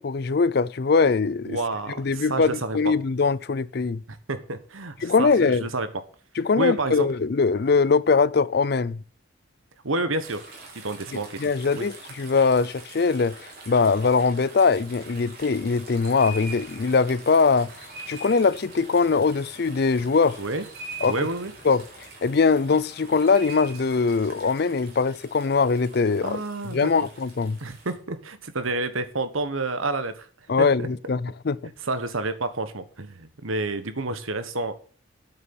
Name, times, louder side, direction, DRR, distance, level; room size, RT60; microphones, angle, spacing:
voice 1, 0.0-1.6 2.0-4.0 5.0-5.7 6.4-9.0 11.1-17.7 18.1-20.4 21.0-21.2 21.6-27.6 30.5-31.6, left 4 dB, 50° left, 0.4 m, -22 dB
voice 2, 1.4-2.9 4.1-5.9 6.6-7.1 9.8-10.4 10.7-11.9 20.4-20.6 21.1-21.5 26.2-26.9 27.6-30.3 30.6-30.9 31.8-34.7, right 2 dB, 85° right, 1.4 m, -29 dB
sound 1, 10.2-28.0, right 2 dB, 50° right, 3.5 m, -44 dB
8.6 x 7.0 x 8.8 m
head